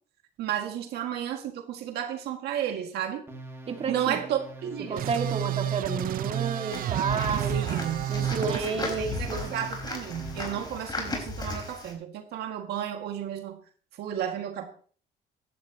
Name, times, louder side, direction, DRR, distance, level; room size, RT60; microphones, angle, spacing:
voice 1, 0.4-3.3 3.9-5.1 7.3-8.1 8.5-13.6 14.0-14.7, right 10 dB, 75° right, 5 dB, 1.8 m, -33 dB
sound 1, 3.3-10.8, right 2 dB, 15° right, 2.2 m, -44 dB
voice 2, 3.7-4.2 4.9-7.7 8.1-9.6, right 5 dB, 35° right, 4 dB, 1.9 m, -31 dB
sound 2, 5.0-8.6, right 12 dB, 55° right, 0.6 m, -30 dB
sound 3, 6.7-11.9, left 3 dB, 25° left, 4.5 m, -36 dB
15.5 x 12.0 x 2.8 m, 0.43 s
cardioid pair, 110°, 17 cm